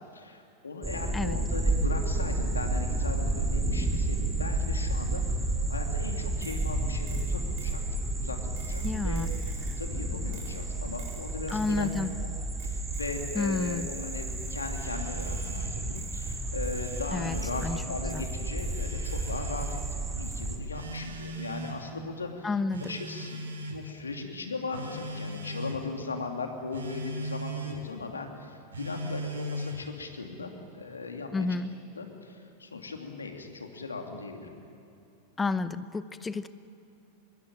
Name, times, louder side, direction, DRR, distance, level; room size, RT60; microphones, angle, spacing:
voice 1, 0.0-9.4 9.8-11.9 12.3-22.5 22.8-23.4 23.7-31.3 32.0-34.5, left 3 dB, 75° left, 3 dB, 2.9 m, -38 dB
sound 1, 0.8-20.6, right 2 dB, 10° right, 2.8 m, -31 dB
sound 2, 6.4-6.7 7.1-7.8 8.6-9.9 10.3-10.6 11.0-12.1 12.6-14.9 15.2-15.6 16.0-17.7 18.1-19.9 20.2-20.5, right 5 dB, 50° right, 6.3 m, -52 dB
voice 2, 8.8-9.3 11.5-12.1 13.3-13.9 17.1-18.3 22.4-23.0 31.3-31.7 35.4-36.5, left 3 dB, 15° left, 14 dB, 0.9 m, -31 dB
Telephone, 14.7-15.8 16.6-17.8 18.7-19.8 20.7-21.8 22.7-23.8 24.7-25.8 26.7-27.8 28.7-29.9, right 1 dB, 70° right, 3.9 m, -39 dB
25.0 x 22.0 x 9.1 m, 2.9 s
figure-of-eight pair, 90°, 0 cm